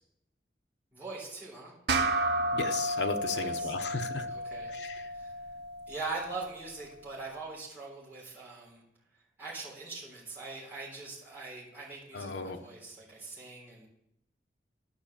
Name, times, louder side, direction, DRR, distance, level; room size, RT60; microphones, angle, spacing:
voice 1, 0.9-1.7 3.3-3.7 4.3-4.7 5.1-5.3 5.9-8.8 9.4-13.9, right 3 dB, 10° right, -8 dB, 3.7 m, -42 dB
sound 1, 1.9-6.7, right 1 dB, 70° right, 0.7 m, -32 dB
voice 2, 2.5-4.2 4.8-5.0 12.1-12.6, left 4 dB, 80° left, 6 dB, 1.0 m, -35 dB
11.0 x 6.3 x 7.2 m, 0.81 s
head